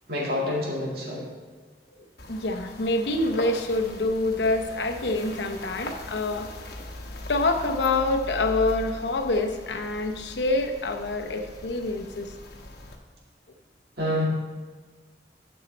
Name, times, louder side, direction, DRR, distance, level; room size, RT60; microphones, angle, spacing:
voice 1, 0.1-1.3 14.0-14.3, left 1 dB, 55° right, -2 dB, 2.1 m, -27 dB
sound 1, 2.2-13.0, left 1 dB, 55° left, 1.1 m, -40 dB
voice 2, 2.3-6.5 7.3-12.3, left 2 dB, 75° left, 5 dB, 0.9 m, -26 dB
10.5 x 6.6 x 4.2 m, 1.4 s
head